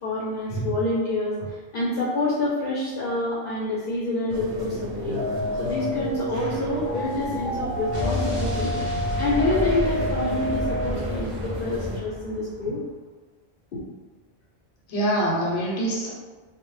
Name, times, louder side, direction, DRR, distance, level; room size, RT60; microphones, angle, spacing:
voice 1, 0.0-5.2 5.6-8.8 9.2-12.8 13.7-13.8, left 2 dB, 60° left, -7 dB, 0.7 m, -27 dB
sound 1, 4.3-12.0, equal, 90° right, 0.9 m, -33 dB
sound 2, 5.0-10.9, left 1 dB, 20° left, 0.7 m, -30 dB
Explosion, 7.9-12.7, left 1 dB, 30° right, 0.5 m, -30 dB
voice 2, 14.9-16.1, right 1 dB, 80° left, -4 dB, 0.9 m, -25 dB
2.1 x 2.0 x 3.0 m, 1.3 s
omnidirectional pair, 1.1 m